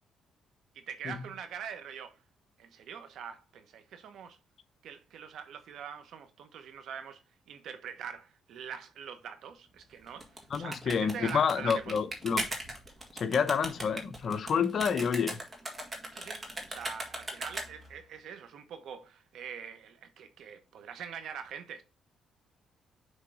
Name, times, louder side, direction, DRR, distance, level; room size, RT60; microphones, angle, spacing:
voice 1, 0.7-2.2 2.6-4.4 4.8-7.2 7.5-10.3 10.6-12.0 16.1-21.8, right 7 dB, 75° right, 1.1 m, -44 dB
sound 1, 10.1-18.0, right 1 dB, 25° right, 1.9 m, -39 dB
voice 2, 10.5-12.4 13.1-15.4, left 6 dB, 55° left, 0.7 m, -29 dB
6.5 x 3.5 x 4.9 m
cardioid pair, 90°, 0 cm